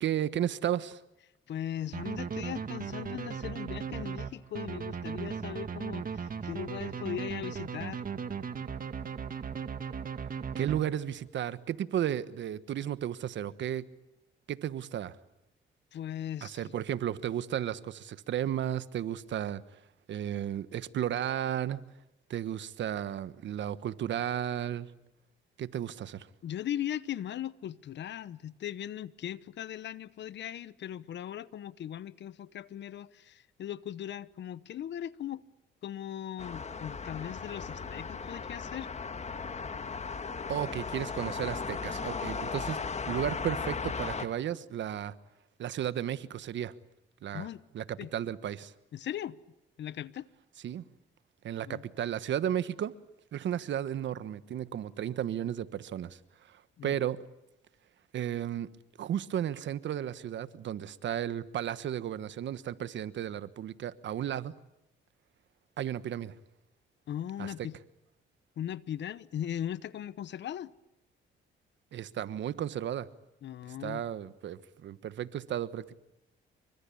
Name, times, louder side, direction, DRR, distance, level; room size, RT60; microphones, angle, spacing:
voice 1, 0.0-1.0 10.6-13.8 14.5-15.2 16.4-19.8 20.1-21.8 22.3-24.9 25.6-26.3 40.5-42.8 43.1-45.1 45.6-46.7 47.2-47.5 47.7-48.7 50.6-50.8 51.4-52.9 53.3-57.2 58.1-58.7 59.0-64.5 65.8-66.3 67.4-67.7 71.9-73.1 73.8-76.0, right 10 dB, 65° right, 1.3 m, -34 dB
voice 2, 1.5-8.0 15.9-16.7 26.4-35.4 35.8-38.9 47.3-47.6 48.0-48.1 48.9-49.4 49.8-50.3 51.7-51.8 56.8-56.9 67.1-67.7 68.6-70.7 73.4-74.0, left 10 dB, 65° left, 0.9 m, -39 dB
sound 1, 1.9-11.2, right 6 dB, 45° right, 1.9 m, -37 dB
sound 2, 36.4-44.3, left 5 dB, 35° left, 1.9 m, -36 dB
27.5 x 24.5 x 8.6 m
cardioid pair, 90°, 20 cm